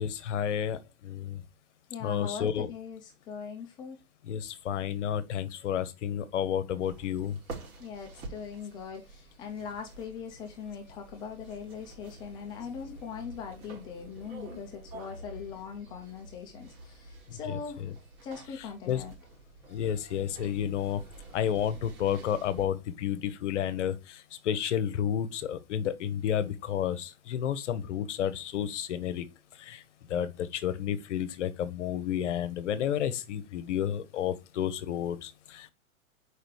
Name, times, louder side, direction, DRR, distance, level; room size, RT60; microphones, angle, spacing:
voice 1, 0.0-1.4 2.0-2.7 4.3-7.4 17.3-17.9 18.6-19.0 19.7-21.0 21.3-29.2 29.6-29.8 30.1-35.7, left 9 dB, 55° left, 1.0 m, -31 dB
voice 2, 1.9-4.0 7.8-17.8 18.2-19.1, left 6 dB, 10° left, 0.4 m, -41 dB
sound 1, 6.8-22.7, right 3 dB, 70° right, 3.2 m, -48 dB
5.2 x 4.9 x 4.7 m
hypercardioid pair, 120°, 43 cm